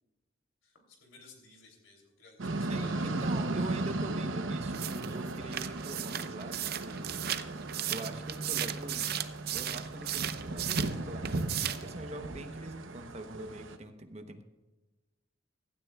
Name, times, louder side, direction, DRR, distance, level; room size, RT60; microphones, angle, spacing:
voice 1, 0.6-3.2 5.4-5.5, left 3 dB, 80° left, 2 dB, 3.1 m, -56 dB
sound 1, 2.4-13.8, right 2 dB, 80° right, 0.8 m, -36 dB
voice 2, 2.7-7.2 7.9-9.2 9.5-14.4, right 1 dB, 35° right, 7 dB, 0.9 m, -44 dB
sound 2, 4.7-11.0 11.2-11.9, right 12 dB, 50° right, 0.6 m, -35 dB
16.0 x 12.0 x 2.4 m, 1.1 s
head